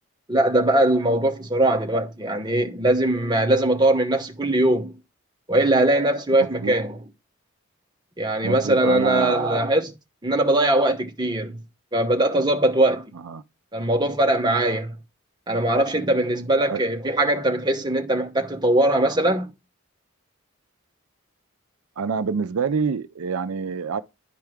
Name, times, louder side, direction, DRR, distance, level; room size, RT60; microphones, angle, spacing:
voice 1, 0.3-4.9 5.5-7.0 8.2-9.9 10.2-11.6 11.9-13.1 13.7-15.0 15.5-19.5, right 1 dB, 20° right, 0.8 m, -21 dB
voice 2, 6.4-6.7 8.4-9.6 13.2-13.4 16.7-16.8 22.0-24.0, right 5 dB, 75° right, 0.4 m, -27 dB
10.5 x 4.6 x 3.5 m
head